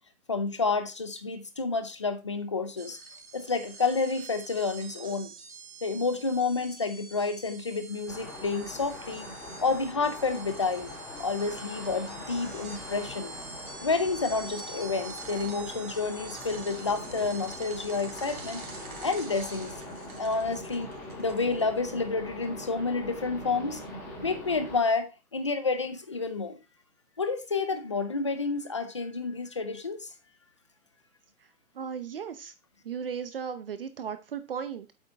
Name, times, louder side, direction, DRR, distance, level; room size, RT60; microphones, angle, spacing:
voice 1, 0.3-3.0 3.3-5.3 5.8-9.3 9.6-10.9 11.2-13.3 13.8-18.6 19.0-19.7 20.2-20.9 21.2-23.8 24.2-26.6 27.2-30.1, left 4 dB, 20° left, 0.5 m, -29 dB
sound 1, 2.8-21.9, right 4 dB, 70° right, 3.0 m, -46 dB
sound 2, 8.1-24.8, left 1 dB, 5° left, 1.7 m, -42 dB
voice 2, 31.4-32.5 32.8-34.9, right 7 dB, 40° right, 0.7 m, -36 dB
8.2 x 5.3 x 4.6 m
hypercardioid pair, 165°, 43 cm